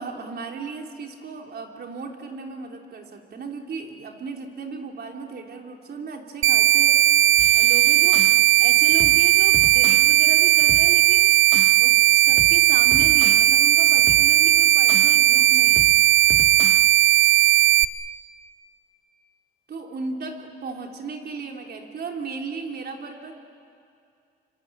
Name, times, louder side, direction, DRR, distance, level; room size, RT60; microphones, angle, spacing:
voice 1, 0.0-7.0 7.5-8.2 8.6-11.4 11.8-15.9 19.7-23.3, right 4 dB, 55° right, 2 dB, 3.6 m, -35 dB
sound 1, 6.4-17.8, right 14 dB, 85° right, 0.7 m, -17 dB
sound 2, 7.4-8.5 8.8-10.1 10.5-11.8 12.2-15.2 15.5-16.9 17.2-17.3, right 1 dB, 5° right, 1.6 m, -37 dB
25.5 x 25.0 x 8.8 m, 2.4 s
cardioid pair, 90°, 20 cm